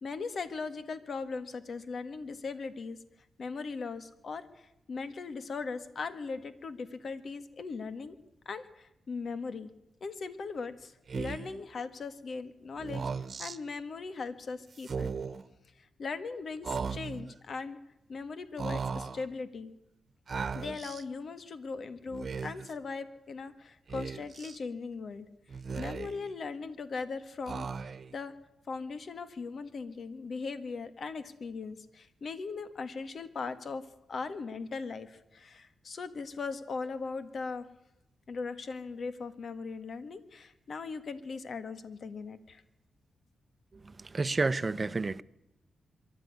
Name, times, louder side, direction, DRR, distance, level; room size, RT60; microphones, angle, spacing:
voice 1, 0.0-3.0 3.4-8.2 8.5-9.7 10.0-13.1 13.4-15.1 15.8-17.8 18.1-19.8 20.5-25.3 25.8-28.3 28.7-37.7 38.3-42.6, left 4 dB, 60° left, 1.7 m, -39 dB
Speech, 11.1-11.6 12.8-13.6 14.8-15.4 16.6-17.3 18.6-19.2 20.3-21.0 22.1-22.7 23.9-24.6 25.5-26.3 27.5-28.2, right 5 dB, 50° right, 1.3 m, -37 dB
voice 2, 44.1-45.2, right 3 dB, 35° right, 0.8 m, -29 dB
24.0 x 13.5 x 9.7 m
cardioid pair, 80°, 0 cm